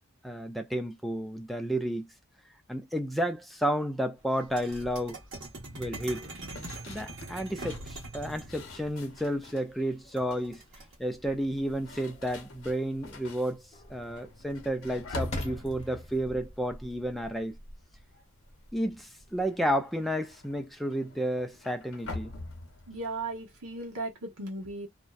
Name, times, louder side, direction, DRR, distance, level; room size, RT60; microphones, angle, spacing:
voice 1, 0.2-2.1 2.7-5.2 5.7-6.3 6.9-10.6 11.0-13.6 13.9-17.6 18.7-22.3, equal, ahead, 0.3 m, -31 dB
sound 1, 4.4-8.5 10.2-10.9, right 2 dB, 55° right, 1.1 m, -42 dB
sound 2, 6.5-9.7 10.1-10.6 11.4-17.7 18.0-18.3 18.6-24.1, left 2 dB, 70° left, 0.8 m, -45 dB
sound 3, 9.3-20.2, left 1 dB, 30° left, 0.8 m, -47 dB
voice 2, 22.9-24.9, right 2 dB, 80° right, 1.0 m, -36 dB
2.5 x 2.2 x 2.3 m
head